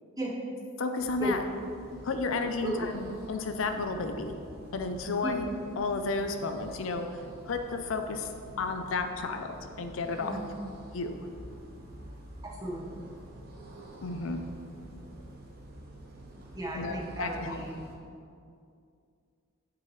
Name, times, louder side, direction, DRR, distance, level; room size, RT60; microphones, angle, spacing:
voice 1, 0.8-1.4 2.0-4.3 4.7-5.5 5.8-8.3 8.6-10.4 10.9-11.2 14.0-14.4 16.7-17.6, left 3 dB, 75° left, 7 dB, 0.5 m, -32 dB
sound 1, 1.0-18.0, right 1 dB, 45° right, 1.0 m, -48 dB
voice 2, 12.4-12.9 16.5-17.8, right 1 dB, 20° right, -3 dB, 1.0 m, -35 dB
8.6 x 6.2 x 3.1 m, 2.4 s
head